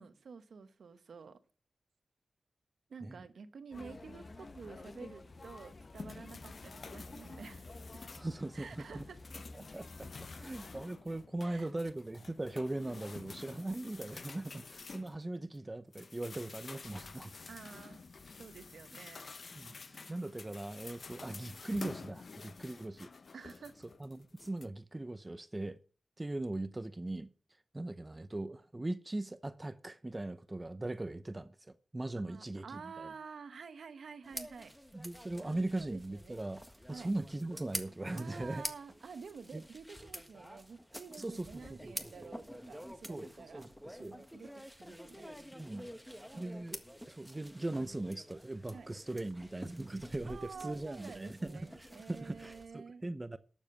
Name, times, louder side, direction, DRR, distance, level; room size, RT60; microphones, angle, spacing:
voice 1, 0.0-1.4 2.9-7.7 8.5-9.2 11.4-11.7 17.5-18.0 18.4-19.3 23.3-23.8 32.2-34.7 35.4-36.4 36.9-37.1 38.1-43.7 44.0-45.4 46.3-46.4 48.7-48.9 50.2-53.1, right 5 dB, 90° right, 1.0 m, -50 dB
sound 1, 3.7-10.9, left 2 dB, 50° left, 1.1 m, -51 dB
sound 2, 5.4-8.4 8.8-15.6 15.9-24.7, left 4 dB, 65° left, 0.8 m, -50 dB
voice 2, 8.1-9.0 9.5-10.1 10.3-17.3 19.5-23.1 24.0-25.8 26.2-27.3 27.7-33.1 34.9-36.6 36.9-38.6 39.5-39.6 41.2-41.5 41.8-41.9 43.1-43.3 43.5-44.2 45.5-46.8 47.1-53.4, right 2 dB, 25° right, 0.7 m, -40 dB
sound 3, 34.2-52.7, equal, ahead, 1.6 m, -48 dB
12.0 x 7.3 x 6.5 m
cardioid pair, 55°, 0 cm